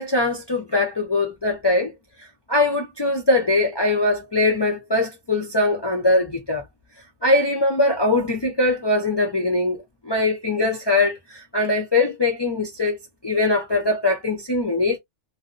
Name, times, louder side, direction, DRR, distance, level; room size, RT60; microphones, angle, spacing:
voice 1, 0.0-1.9 2.2-6.6 7.2-9.8 10.0-13.0 13.2-15.0, left 2 dB, 40° left, 0.4 m, -21 dB
2.6 x 2.0 x 2.3 m
omnidirectional pair, 1.2 m